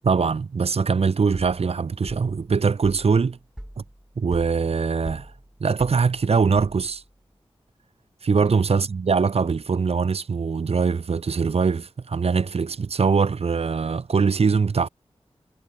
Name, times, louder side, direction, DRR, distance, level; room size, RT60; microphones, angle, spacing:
voice 1, 0.0-3.4 3.8-3.9 4.2-5.3 5.6-7.0 8.2-14.9, right 5 dB, 75° right, 1.6 m, -22 dB
sound 1, 3.6-7.1, equal, 5° right, 7.3 m, -43 dB
cardioid pair, 45°, 11 cm